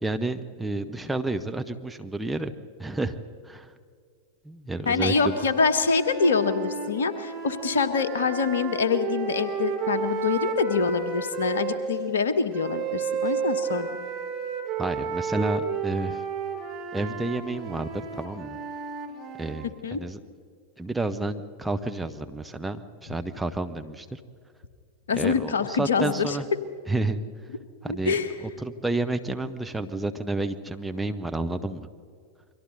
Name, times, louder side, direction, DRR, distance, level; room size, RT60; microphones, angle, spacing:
voice 1, 0.0-2.5 2.8-3.2 3.4-3.7 4.4-5.3 14.8-16.2 16.9-18.6 19.4-20.2 20.8-24.2 25.1-26.5 26.9-27.2 27.8-28.1 28.4-31.9, right 2 dB, 5° right, 6 dB, 1.0 m, -30 dB
voice 2, 4.9-14.0 19.8-20.0 25.1-26.4 27.9-28.3, left 5 dB, 65° left, 10 dB, 1.4 m, -25 dB
sound 1, 4.9-11.8 12.5-19.7, right 6 dB, 35° right, 2.9 m, -32 dB
29.5 x 23.0 x 4.1 m, 2.2 s
figure-of-eight pair, 90°, 0 cm